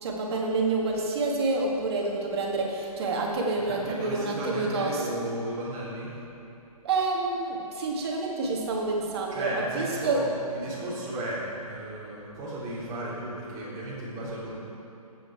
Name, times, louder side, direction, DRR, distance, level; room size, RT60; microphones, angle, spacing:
voice 1, 0.0-5.1 6.8-10.3, right 3 dB, 45° right, -1 dB, 1.9 m, -28 dB
voice 2, 3.7-6.1 9.3-14.6, right 1 dB, 20° right, -7 dB, 2.9 m, -35 dB
11.5 x 8.8 x 4.5 m, 2.8 s
hypercardioid pair, 150°, 19 cm